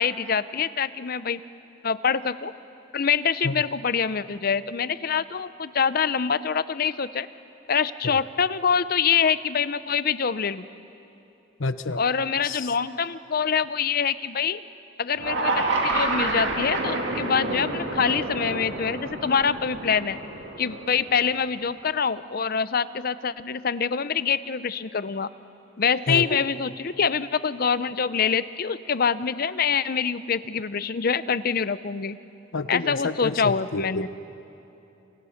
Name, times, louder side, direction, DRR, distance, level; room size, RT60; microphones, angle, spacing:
voice 1, 0.0-1.4 1.8-2.5 2.9-7.3 7.7-10.7 12.0-14.6 15.0-20.2 20.6-25.3 25.8-32.2 32.7-34.1, left 6 dB, 45° left, 15 dB, 0.6 m, -25 dB
voice 2, 11.6-12.0 12.4-12.7 26.1-26.4 32.5-34.1, left 3 dB, 75° left, 11 dB, 0.9 m, -28 dB
sound 1, 15.2-21.4, right 2 dB, 60° right, 2.5 m, -28 dB
28.0 x 25.5 x 5.8 m, 2.9 s
head